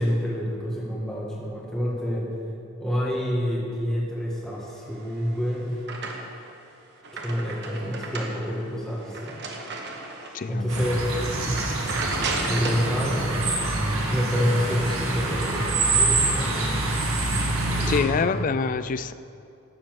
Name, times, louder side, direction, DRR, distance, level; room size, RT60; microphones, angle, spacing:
voice 1, 0.0-2.3 2.8-5.8 7.2-9.4 10.5-11.0 12.5-13.2 14.1-16.6 17.7-18.5, equal, 5° left, -5 dB, 1.7 m, -28 dB
sound 1, 4.9-6.5 6.9-10.5 10.9-11.1 11.4-12.9, right 3 dB, 55° right, 1.4 m, -34 dB
voice 2, 10.3-10.8 17.9-19.1, left 5 dB, 40° left, 15 dB, 0.3 m, -26 dB
sound 2, 10.7-18.0, right 2 dB, 80° right, 2.1 m, -25 dB
12.0 x 7.5 x 7.5 m, 2.7 s
head